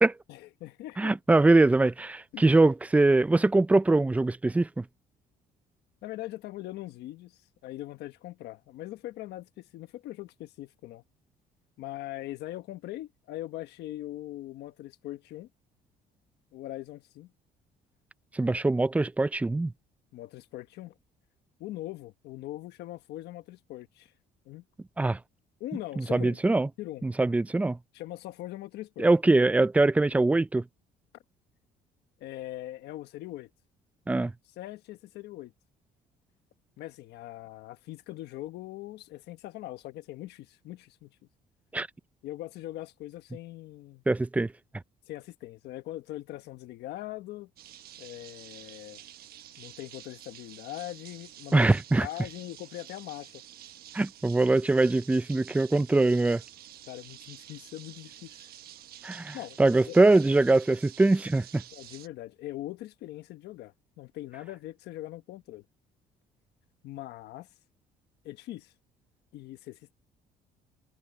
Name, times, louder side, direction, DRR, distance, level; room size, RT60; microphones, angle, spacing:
voice 1, 0.3-1.1 2.3-2.4 6.0-11.0 11.8-15.5 16.5-17.3 20.1-20.9 21.6-24.1 24.4-24.6 25.6-26.4 26.8-27.1 27.9-29.1 32.2-33.5 34.6-35.5 36.8-41.1 42.2-44.0 45.1-47.5 48.0-49.0 49.6-51.7 52.0-53.4 56.9-58.5 59.3-59.6 59.9-60.0 61.7-65.6 66.8-67.5 68.2-68.7 69.3-69.9, left 15 dB, 80° left, 1.3 m, -41 dB
voice 2, 1.0-4.8 18.3-19.7 25.0-25.2 26.0-26.7 27.0-27.8 29.0-30.6 34.1-34.3 41.7-41.9 44.1-44.5 51.5-52.1 53.9-56.4 59.0-61.6, right 2 dB, 10° right, 0.4 m, -23 dB
sound 1, 47.6-62.1, right 12 dB, 65° right, 1.3 m, -49 dB
cardioid pair, 110°, 17 cm